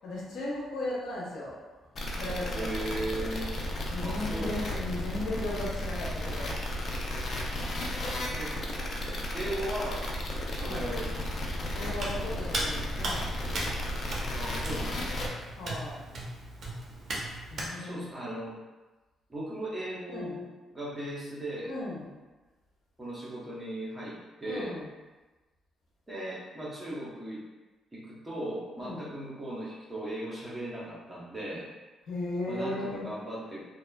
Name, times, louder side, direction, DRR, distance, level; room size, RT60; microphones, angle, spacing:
voice 1, 0.0-1.6 2.1-3.0 3.9-6.5 10.7-10.9 11.7-13.3 15.6-16.0 17.5-18.1 20.1-20.4 21.6-22.0 24.5-24.8 28.8-29.1 32.1-33.1, left 2 dB, 75° left, -6 dB, 0.9 m, -36 dB
sound 1, 1.9-15.3, left 1 dB, 50° left, 0.5 m, -34 dB
voice 2, 2.5-3.5 4.0-4.6 8.3-8.6 9.3-10.0 10.5-11.1 14.3-15.4 17.7-18.5 19.3-21.7 23.0-24.8 26.1-27.4 27.9-31.7 32.5-33.6, right 1 dB, 20° right, -6 dB, 0.9 m, -37 dB
Hands, 12.0-17.7, right 1 dB, 55° right, 0.6 m, -37 dB
2.8 x 2.3 x 2.2 m, 1.2 s
cardioid pair, 90°, 0 cm